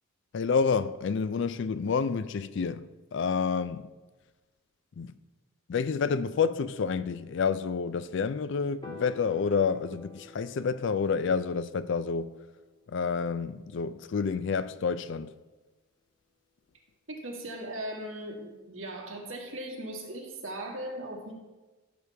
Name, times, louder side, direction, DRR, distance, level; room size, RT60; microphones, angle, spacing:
voice 1, 0.3-3.9 5.0-5.1 5.7-12.3 12.9-15.3, left 5 dB, 60° left, 0.4 m, -29 dB
Piano, 8.8-15.1, left 2 dB, 20° left, 0.9 m, -52 dB
voice 2, 17.1-21.3, right 1 dB, 70° right, 1.9 m, -38 dB
13.0 x 6.7 x 3.4 m
head